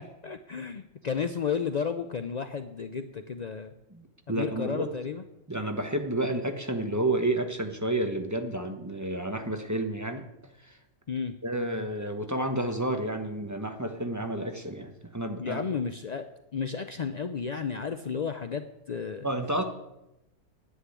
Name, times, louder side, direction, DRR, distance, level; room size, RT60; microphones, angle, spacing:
voice 1, 0.0-3.7 4.3-5.2 11.1-11.3 15.4-16.3 16.5-19.3, left 6 dB, 75° left, 9 dB, 0.3 m, -33 dB
voice 2, 3.9-4.9 5.5-10.2 10.6-10.7 11.4-15.6 19.2-19.6, right 1 dB, 15° right, 5 dB, 1.0 m, -30 dB
10.0 x 8.0 x 9.7 m, 0.90 s
omnidirectional pair, 1.5 m